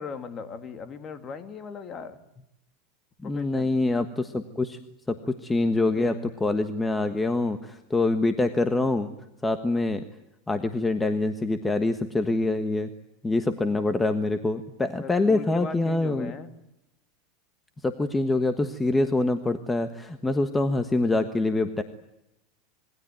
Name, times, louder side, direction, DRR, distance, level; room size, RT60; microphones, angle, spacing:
voice 1, 0.0-2.2 3.2-3.7 6.0-6.4 14.9-16.5, left 5 dB, 25° left, 10 dB, 2.5 m, -39 dB
voice 2, 3.2-4.8 5.1-9.1 9.4-10.0 10.5-12.9 13.2-16.3 17.8-21.8, left 2 dB, 10° left, 9 dB, 1.4 m, -25 dB
26.5 x 22.0 x 9.2 m, 0.87 s
supercardioid pair, 150°, 0 cm